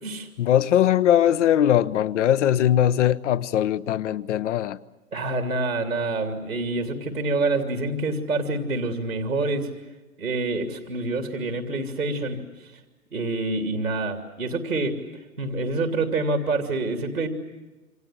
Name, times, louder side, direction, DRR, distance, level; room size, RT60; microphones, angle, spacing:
voice 1, 0.4-4.8, left 10 dB, 55° left, 1.0 m, -20 dB
voice 2, 5.1-9.7 10.2-12.4 13.1-15.0 15.4-17.3, right 2 dB, 85° right, 3.0 m, -26 dB
28.0 x 26.5 x 7.6 m
figure-of-eight pair, 105°, 43 cm